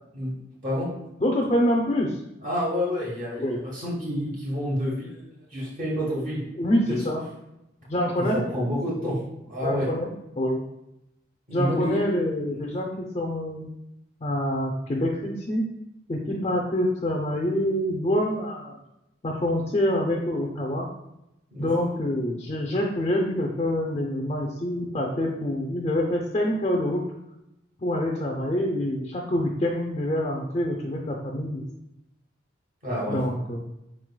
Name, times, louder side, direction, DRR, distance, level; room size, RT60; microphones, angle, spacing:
voice 1, 1.2-2.2 3.4-3.6 6.6-7.2 7.9-8.4 9.6-10.1 10.4-10.6 11.5-13.7 14.2-15.7 16.1-18.8 19.2-20.9 21.6-27.0 27.8-31.6 33.1-33.6, left 1 dB, 30° left, 0 dB, 0.5 m, -26 dB
voice 2, 2.4-5.2 5.5-6.4 6.9-7.0 8.2-9.2 9.5-9.9 11.5-12.0 21.5-21.7 32.8-33.2, equal, 45° right, -6 dB, 1.3 m, -28 dB
4.6 x 4.4 x 2.2 m, 0.87 s
head